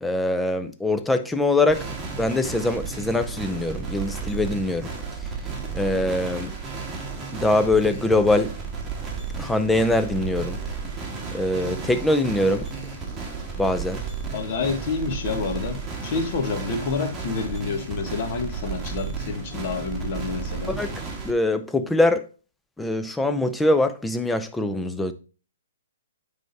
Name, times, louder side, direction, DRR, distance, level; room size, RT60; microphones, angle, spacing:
voice 1, 0.0-4.9 5.7-6.5 7.3-8.5 9.4-10.6 11.3-12.7 13.6-14.0 20.7-20.9 21.2-22.2 22.8-25.1, left 2 dB, 5° left, 0.5 m, -23 dB
sound 1, 1.7-21.3, right 5 dB, 10° right, 1.4 m, -33 dB
voice 2, 14.3-20.8, left 4 dB, 45° left, 1.4 m, -28 dB
9.1 x 3.5 x 4.0 m
hypercardioid pair, 145°, 0 cm